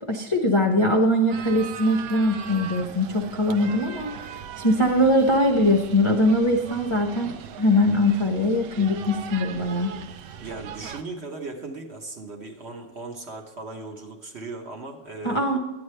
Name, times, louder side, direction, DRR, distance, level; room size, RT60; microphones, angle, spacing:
voice 1, 0.0-9.9 15.2-15.6, left 1 dB, 35° left, 1 dB, 0.4 m, -22 dB
sound 1, 1.3-11.0, right 8 dB, 90° right, 1.3 m, -39 dB
voice 2, 10.4-15.6, right 3 dB, 45° right, 2 dB, 1.1 m, -37 dB
10.5 x 9.5 x 3.3 m, 1.1 s
omnidirectional pair, 1.8 m